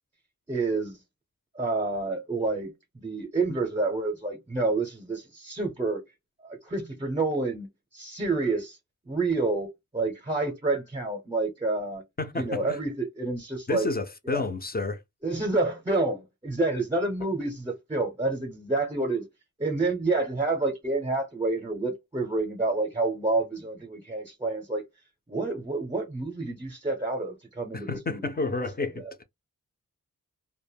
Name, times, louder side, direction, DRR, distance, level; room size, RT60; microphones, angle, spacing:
voice 1, 0.5-1.0 1.5-6.0 6.4-7.7 7.9-8.8 9.1-9.7 9.9-12.0 12.3-13.9 14.3-14.5 15.2-19.2 19.6-24.8 25.3-28.3 29.0-29.2, right 3 dB, 15° right, 0.6 m, -28 dB
voice 2, 12.2-12.8 13.7-15.0 27.7-29.0, left 3 dB, 30° left, 0.4 m, -30 dB
2.2 x 2.0 x 3.2 m
wide cardioid pair, 110°, 33 cm